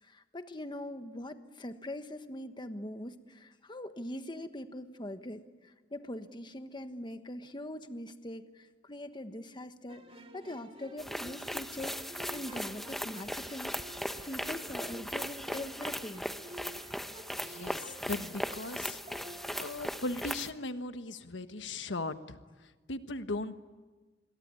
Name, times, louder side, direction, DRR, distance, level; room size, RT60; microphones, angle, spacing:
voice 1, 0.0-16.3, left 1 dB, 25° left, 9 dB, 1.3 m, -42 dB
sound 1, 9.9-19.6, right 1 dB, 35° right, 1.9 m, -51 dB
sound 2, 11.0-20.5, equal, ahead, 1.0 m, -38 dB
voice 2, 17.3-19.0 19.3-23.6, left 2 dB, 90° left, 10 dB, 1.3 m, -38 dB
27.5 x 22.0 x 9.7 m, 1.3 s
head